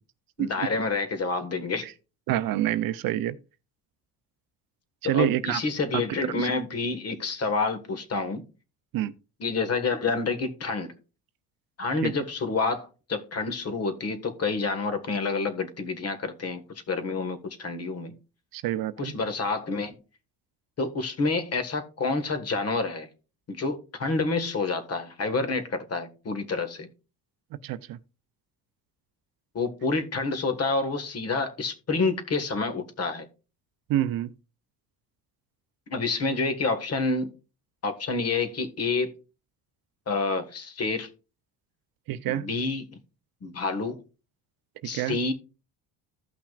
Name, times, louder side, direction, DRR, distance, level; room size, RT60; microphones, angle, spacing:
voice 1, 0.4-1.9 5.0-8.4 9.4-10.9 11.8-18.1 19.0-20.0 20.8-23.1 23.5-26.9 29.5-33.3 35.9-37.3 37.8-39.1 40.1-41.1 42.3-43.0 43.4-44.0 44.8-45.3, left 3 dB, 40° left, 1.6 m, -28 dB
voice 2, 2.3-3.4 5.0-5.6 5.9-6.0 6.4-6.5 8.9-9.1 12.0-12.1 18.5-19.1 27.6-28.0 33.9-34.3 42.1-42.5 44.9-45.2, right 13 dB, 65° right, 0.6 m, -27 dB
15.0 x 5.8 x 2.4 m
cardioid pair, 125°, 38 cm